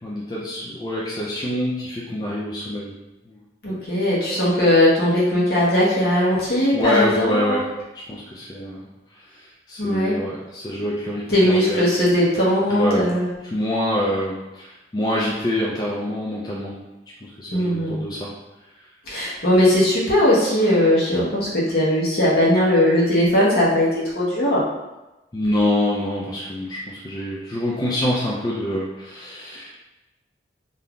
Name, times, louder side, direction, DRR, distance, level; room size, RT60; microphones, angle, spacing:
voice 1, 0.0-2.9 3.3-3.4 3.7-3.8 6.7-7.7 8.1-8.8 9.7-11.8 12.7-13.0 13.5-16.8 17.2-18.3 25.3-29.7, left 1 dB, 20° left, -5 dB, 0.4 m, -25 dB
voice 2, 3.6-7.7 9.8-10.1 11.3-13.3 17.5-18.1 19.1-24.6, left 1 dB, 60° left, -6 dB, 1.0 m, -19 dB
2.6 x 2.3 x 3.5 m, 1.0 s
head